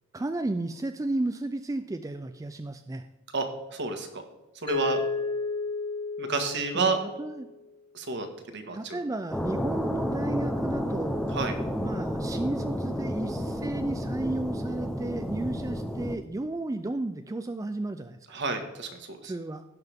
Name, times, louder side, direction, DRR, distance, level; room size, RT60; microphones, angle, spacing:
voice 1, 0.1-3.1 6.7-6.9 7.2-7.5 8.7-11.2 11.8-18.4 19.2-19.6, right 2 dB, 15° right, 8 dB, 0.3 m, -33 dB
voice 2, 3.3-4.2 4.5-5.0 6.2-7.0 7.9-9.0 11.3-11.5 18.3-19.3, right 3 dB, 60° right, 6 dB, 1.5 m, -30 dB
Mallet percussion, 4.7-7.6, left 3 dB, 25° left, 2.1 m, -32 dB
sound 1, 9.3-16.2, equal, 5° left, 0.7 m, -31 dB
16.0 x 5.9 x 3.5 m, 1.1 s
head